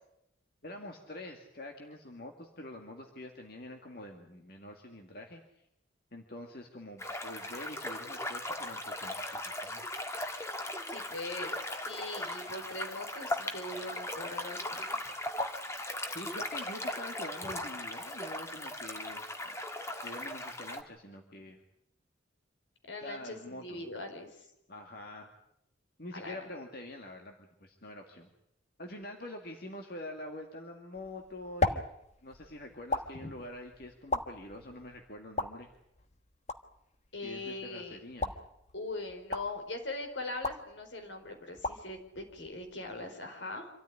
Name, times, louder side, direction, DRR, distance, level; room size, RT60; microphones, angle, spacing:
voice 1, 0.6-5.7 6.1-9.8 16.1-19.3 20.0-21.6 23.0-23.8 24.7-25.3 26.0-28.3 28.8-31.8 32.2-35.7 37.2-38.3, left 1 dB, 50° left, 2 dB, 2.1 m, -45 dB
sound 1, 7.0-20.8, left 1 dB, 15° left, 1.6 m, -38 dB
voice 2, 10.9-15.0 17.4-17.5 22.9-24.5 26.1-26.5 33.2-33.3 37.1-38.0 38.7-43.7, left 2 dB, 75° left, 5 dB, 4.6 m, -41 dB
sound 2, 30.9-43.1, left 3 dB, 35° left, 1.3 m, -39 dB
26.5 x 14.0 x 9.8 m, 0.81 s
head